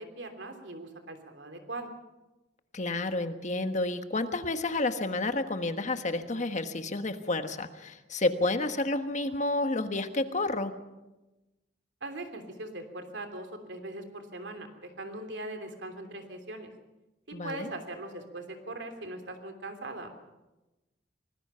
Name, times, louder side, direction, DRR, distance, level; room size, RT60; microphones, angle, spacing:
voice 1, 0.0-1.9 12.0-16.7 17.3-20.1, right 2 dB, 70° right, 6 dB, 3.1 m, -40 dB
voice 2, 2.7-10.7 17.3-17.7, left 2 dB, 40° left, 8 dB, 1.4 m, -30 dB
25.0 x 19.5 x 5.7 m, 1.0 s
head